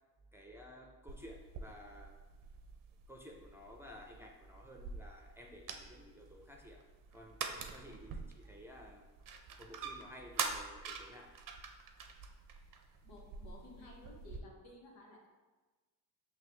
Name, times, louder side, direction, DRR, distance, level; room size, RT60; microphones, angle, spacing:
voice 1, 0.3-2.2 3.1-7.4 7.7-9.0 9.6-11.3, equal, 5° right, 0 dB, 0.7 m, -54 dB
sound 1, 1.1-14.4, right 5 dB, 45° right, 0.6 m, -46 dB
voice 2, 13.0-15.3, left 2 dB, 75° left, -1 dB, 1.1 m, -55 dB
5.8 x 2.3 x 3.3 m, 1.3 s
supercardioid pair, 50°, 46 cm